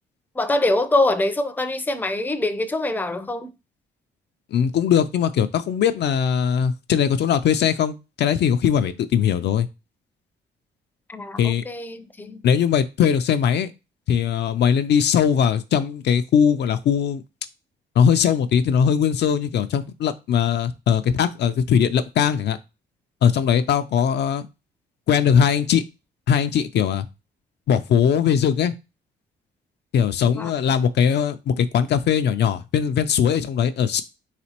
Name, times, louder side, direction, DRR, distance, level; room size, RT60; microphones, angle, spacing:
voice 1, 0.4-3.5 11.1-12.4 30.4-30.5, left 2 dB, 10° left, 0.5 m, -24 dB
voice 2, 4.5-9.7 11.4-11.6 12.4-13.7 14.1-17.2 18.0-22.6 23.2-24.5 25.1-25.8 26.3-27.0 27.7-28.7 29.9-34.0, left 8 dB, 60° left, 0.4 m, -20 dB
4.2 x 4.1 x 2.9 m
cardioid pair, 90°, 20 cm